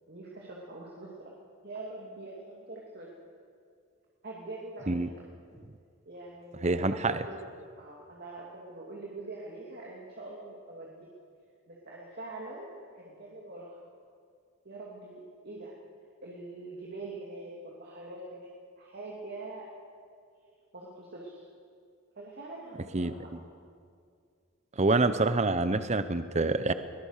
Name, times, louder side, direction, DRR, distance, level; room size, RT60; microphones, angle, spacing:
voice 1, 0.1-1.3 1.6-3.1 4.2-5.2 6.1-11.0 11.7-13.8 14.6-15.7 16.2-18.5 18.8-19.7 20.7-21.4 22.2-23.3, right 2 dB, 50° right, -3 dB, 2.8 m, -44 dB
voice 2, 6.6-7.2 22.9-23.1 24.8-26.7, right 3 dB, 35° right, 12 dB, 0.8 m, -26 dB
21.5 x 20.0 x 6.6 m, 2.3 s
head